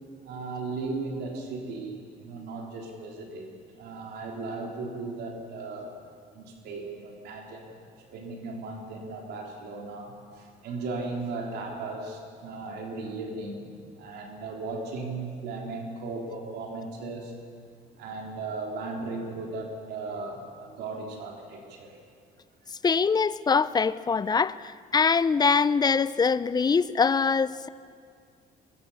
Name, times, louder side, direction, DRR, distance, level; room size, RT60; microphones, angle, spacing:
voice 1, 0.2-3.5 3.8-5.9 6.3-13.7 14.0-17.3 18.0-22.0, right 3 dB, 75° right, 3.6 m, -36 dB
voice 2, 22.8-24.6 24.9-27.7, left 5 dB, 25° left, 0.6 m, -23 dB
23.0 x 21.5 x 7.1 m
cardioid pair, 110°, 17 cm